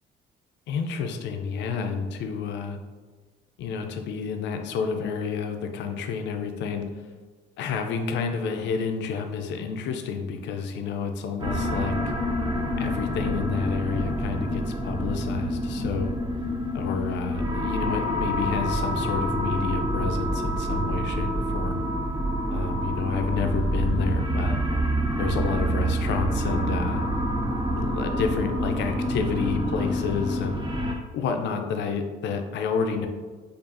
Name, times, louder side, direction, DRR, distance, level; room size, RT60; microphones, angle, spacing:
voice 1, 0.7-2.8 3.6-6.9 7.6-12.0 12.8-16.1 16.7-21.8 22.5-24.6 25.2-27.0 27.7-30.7 31.1-33.1, left 5 dB, 75° left, 5 dB, 0.5 m, -29 dB
sound 1, 11.4-31.0, equal, 25° right, 0.5 m, -27 dB
4.7 x 2.5 x 2.5 m, 1.4 s
cardioid pair, 115°, 18 cm